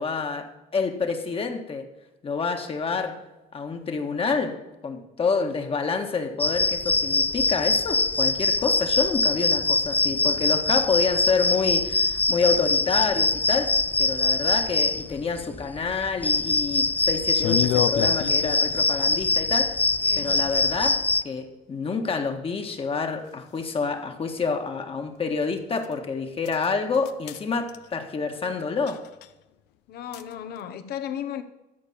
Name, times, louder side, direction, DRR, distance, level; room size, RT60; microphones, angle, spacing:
voice 1, 0.0-1.9 2.2-3.2 3.5-19.8 20.1-29.1, left 4 dB, 35° left, 1.6 m, -28 dB
sound 1, 6.4-21.2, left 3 dB, 10° left, 0.4 m, -23 dB
sound 2, 17.3-18.8 22.7-22.8 23.6-23.7 25.8-25.9 26.5-26.7 26.9-27.4 27.7-27.9 28.9-29.3 30.1-30.3, left 12 dB, 90° left, 0.6 m, -28 dB
voice 2, 20.0-20.6 29.9-31.4, left 9 dB, 70° left, 1.2 m, -35 dB
13.0 x 5.2 x 8.4 m
cardioid pair, 110°, 17 cm